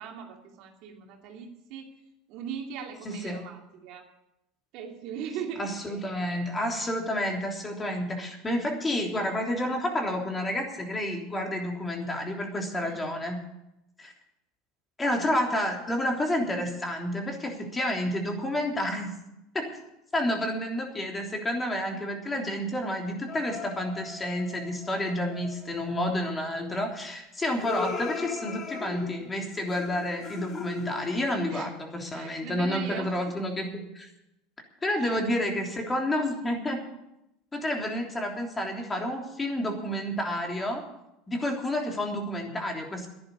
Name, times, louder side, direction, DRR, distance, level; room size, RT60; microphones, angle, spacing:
voice 1, 0.0-1.9 2.3-4.0 4.7-5.7 12.8-13.0 25.7-25.8 31.5-31.7 32.1-33.1 35.0-35.2, right 7 dB, 60° right, 2 dB, 2.5 m, -39 dB
voice 2, 3.1-3.5 5.6-13.5 14.0-14.1 15.0-19.2 19.5-19.7 20.1-34.1 34.8-36.8 37.5-40.9 41.3-43.1, left 1 dB, 20° left, 2 dB, 3.3 m, -30 dB
sound 1, 23.3-26.0 27.6-31.4, left 5 dB, 40° left, 2.4 m, -38 dB
11.0 x 10.5 x 8.4 m, 0.88 s
hypercardioid pair, 90°, 0 cm